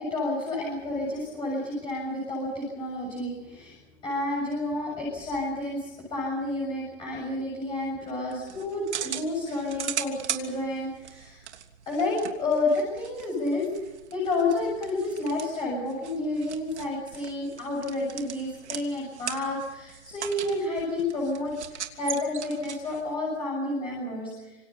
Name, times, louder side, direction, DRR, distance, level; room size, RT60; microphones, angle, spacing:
voice 1, 0.0-3.8 4.0-11.4 11.9-13.7 14.1-24.6, left 2 dB, 15° left, -3 dB, 7.1 m, -30 dB
sound 1, 8.3-23.1, right 9 dB, 65° right, 3.0 m, -40 dB
26.5 x 26.5 x 5.7 m, 1.0 s
hypercardioid pair, 160°, 36 cm